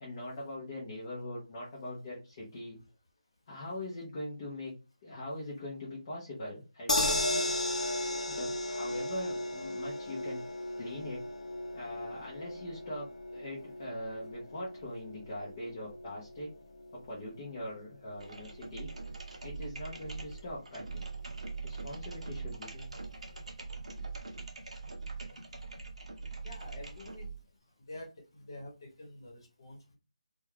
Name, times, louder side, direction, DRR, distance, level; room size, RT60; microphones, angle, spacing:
voice 1, 0.0-2.8 3.5-4.7 5.0-7.5 8.3-10.4 10.8-11.2 11.7-16.5 16.9-18.9 19.4-21.1 21.6-22.9, left 1 dB, 20° left, 0.6 m, -42 dB
sound 1, 6.9-19.1 19.5-19.6 19.9-20.0, left 1 dB, 70° left, 0.7 m, -36 dB
sound 2, 18.1-27.4, right 4 dB, 60° right, 0.7 m, -42 dB
voice 2, 26.4-27.3 27.9-30.0, left 1 dB, 40° left, 1.0 m, -47 dB
2.3 x 2.2 x 3.3 m
figure-of-eight pair, 175°, 4 cm